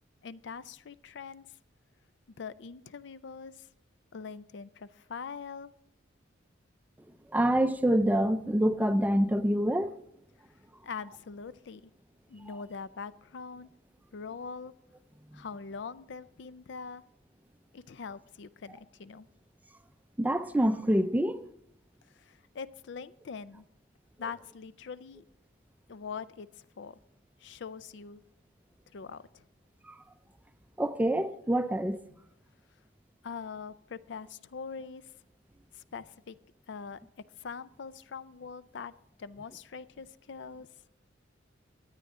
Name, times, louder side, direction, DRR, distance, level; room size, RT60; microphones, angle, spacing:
voice 1, 0.2-1.5 2.4-3.7 4.1-5.7 10.8-11.9 12.3-13.7 14.1-14.7 15.3-17.0 17.7-19.3 22.1-23.7 24.2-25.2 25.9-26.5 26.8-27.0 27.4-28.2 28.9-29.4 33.2-35.1 35.7-36.4 36.7-38.9 39.2-40.7, left 5 dB, 60° left, 0.4 m, -43 dB
voice 2, 7.3-9.9 12.5-12.6 15.3-15.4 20.2-21.5 29.8-30.0 30.8-32.0, right 1 dB, 10° right, 0.5 m, -26 dB
23.0 x 9.1 x 3.7 m
head